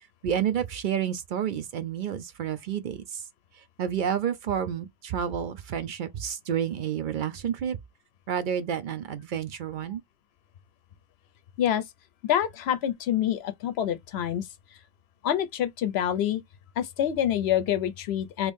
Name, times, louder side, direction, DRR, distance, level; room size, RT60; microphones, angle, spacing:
voice 1, 0.2-3.2 3.8-7.8 8.3-10.0, right 8 dB, 60° right, 0.6 m, -30 dB
voice 2, 12.2-14.5 15.2-16.4 16.8-18.5, left 10 dB, 75° left, 0.9 m, -26 dB
3.0 x 2.6 x 3.5 m
omnidirectional pair, 1.1 m